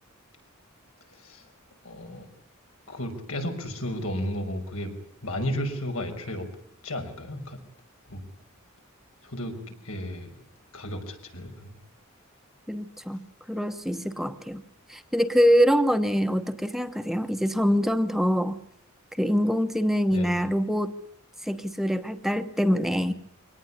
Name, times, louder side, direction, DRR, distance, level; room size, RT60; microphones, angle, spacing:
voice 1, 1.1-1.4 1.8-2.3 2.9-4.9 5.2-6.5 6.8-7.6 8.1-8.2 9.2-9.5 9.8-10.3 10.7-11.7 20.1-20.4, equal, 85° left, 4 dB, 5.8 m, -33 dB
voice 2, 12.7-14.6 14.9-18.6 19.2-21.0 21.4-23.1, equal, ahead, 8 dB, 1.1 m, -24 dB
24.0 x 18.5 x 9.9 m, 0.66 s
head